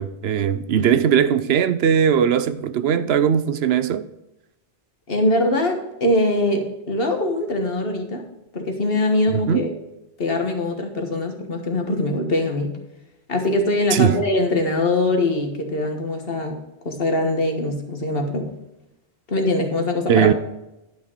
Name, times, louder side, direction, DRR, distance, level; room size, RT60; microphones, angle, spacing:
voice 1, 0.0-4.1 9.3-9.6 13.9-14.2 20.1-20.3, right 8 dB, 75° right, 0.8 m, -19 dB
voice 2, 5.1-8.2 8.5-9.7 10.2-12.8 13.3-16.6 16.8-18.5 19.3-20.3, left 2 dB, 60° left, 1.7 m, -22 dB
10.5 x 6.3 x 4.5 m
omnidirectional pair, 1.1 m